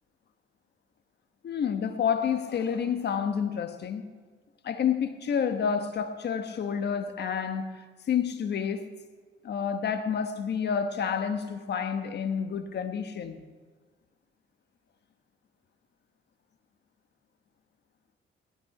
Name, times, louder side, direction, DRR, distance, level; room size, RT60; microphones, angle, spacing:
voice 1, 1.4-4.1 4.6-8.9 9.4-13.4, left 7 dB, 60° left, 1.2 m, -29 dB
17.0 x 13.0 x 5.8 m
cardioid pair, 90°, 20 cm